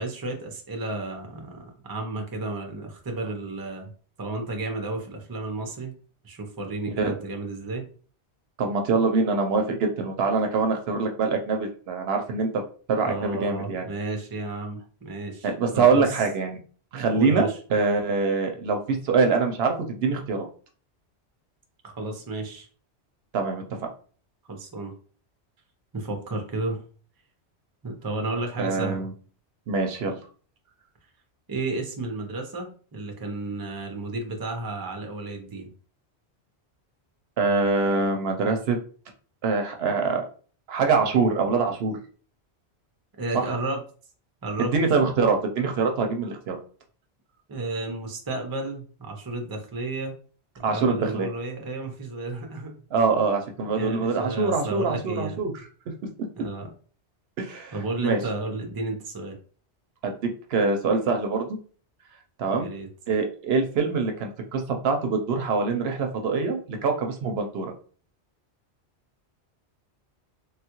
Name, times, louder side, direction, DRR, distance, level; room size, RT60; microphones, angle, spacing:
voice 1, 0.0-3.9 4.2-5.9 6.2-7.9 13.0-16.1 17.1-17.6 21.8-22.7 24.5-24.9 25.9-26.8 27.8-29.1 31.5-35.7 43.2-43.8 44.4-44.7 47.5-50.1 50.6-52.7 53.8-55.4 56.4-56.7 57.7-59.4 62.6-62.9, right 2 dB, 25° right, 3 dB, 0.5 m, -32 dB
voice 2, 8.6-12.6 12.9-13.8 15.4-16.6 16.9-20.5 23.3-23.9 28.6-29.1 29.7-30.2 37.4-38.8 39.4-40.3 40.7-42.0 43.3-43.6 44.7-46.6 50.6-51.3 52.9-55.5 57.4-57.7 58.0-58.2 60.0-61.5 62.4-62.7 63.1-67.7, right 4 dB, 70° right, 4 dB, 0.8 m, -24 dB
3.3 x 2.3 x 2.9 m, 0.42 s
omnidirectional pair, 1.1 m